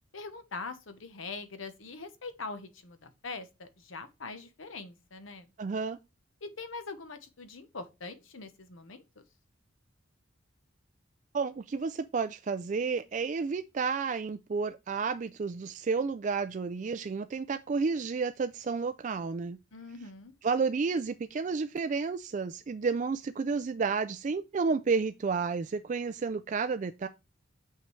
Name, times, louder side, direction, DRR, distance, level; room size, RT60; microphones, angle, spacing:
voice 1, 0.1-5.5 6.4-9.2 19.7-20.3, left 3 dB, 85° left, 1.0 m, -43 dB
voice 2, 5.6-6.0 11.3-19.6 20.4-27.1, right 4 dB, 40° right, 0.3 m, -31 dB
7.3 x 5.7 x 3.2 m
head